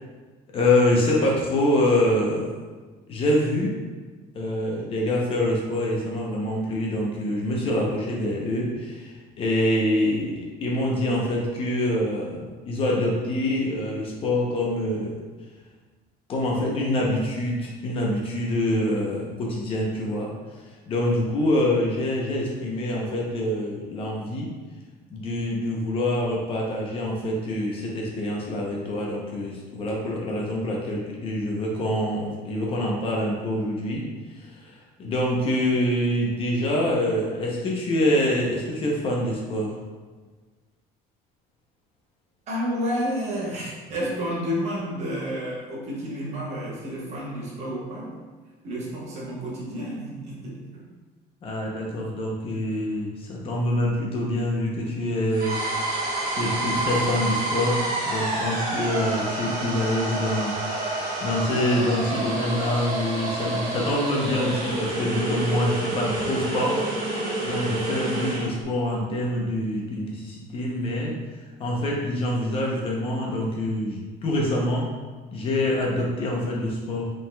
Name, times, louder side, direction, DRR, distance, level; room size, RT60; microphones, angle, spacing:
voice 1, 0.5-2.5 3.1-3.7 4.3-15.2 16.3-24.5 25.1-34.0 34.3-39.8 51.4-55.9 56.2-67.2 67.4-71.2 71.6-74.9 75.3-77.1, left 1 dB, 30° left, -2 dB, 0.6 m, -25 dB
voice 2, 42.5-48.1 48.6-50.8, equal, 40° right, -4 dB, 1.1 m, -30 dB
sound 1, 55.3-68.5, right 2 dB, 65° right, 1.3 m, -28 dB
5.1 x 3.6 x 2.2 m, 1.4 s
cardioid pair, 175°, 18 cm